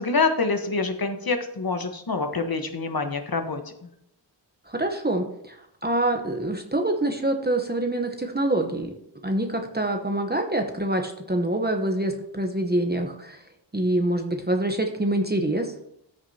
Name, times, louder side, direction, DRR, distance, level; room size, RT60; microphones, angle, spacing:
voice 1, 0.0-3.6, left 4 dB, 50° left, 6 dB, 1.2 m, -26 dB
voice 2, 4.7-8.9 9.2-13.4 13.7-15.7, right 1 dB, 20° right, 4 dB, 0.9 m, -26 dB
14.0 x 6.2 x 2.8 m, 0.76 s
wide cardioid pair, 50°, 45 cm